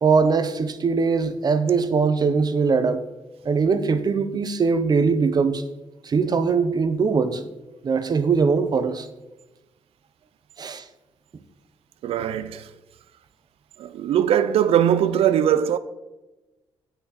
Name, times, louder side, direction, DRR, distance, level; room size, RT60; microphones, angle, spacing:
voice 1, 0.0-3.1 3.4-5.6 6.0-7.4 7.8-9.1 10.6-10.8, right 5 dB, 45° right, 0.9 m, -21 dB
voice 2, 12.0-12.7 13.8-15.8, right 10 dB, 85° right, 0.5 m, -20 dB
16.0 x 6.0 x 4.2 m
cardioid pair, 105°, 10 cm